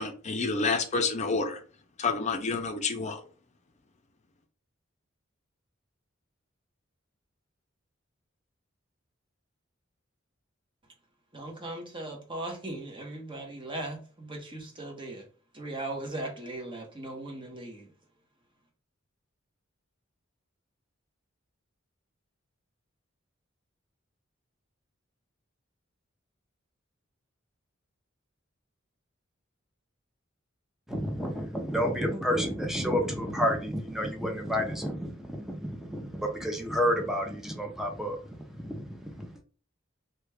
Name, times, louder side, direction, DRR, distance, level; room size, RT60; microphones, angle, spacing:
voice 1, 0.0-1.6 2.0-3.2, left 4 dB, 35° left, 0.6 m, -29 dB
voice 2, 11.3-15.3 15.5-17.9, right 2 dB, 25° right, 0.9 m, -38 dB
voice 3, 30.9-39.4, equal, ahead, 0.7 m, -30 dB
3.3 x 2.4 x 3.3 m
head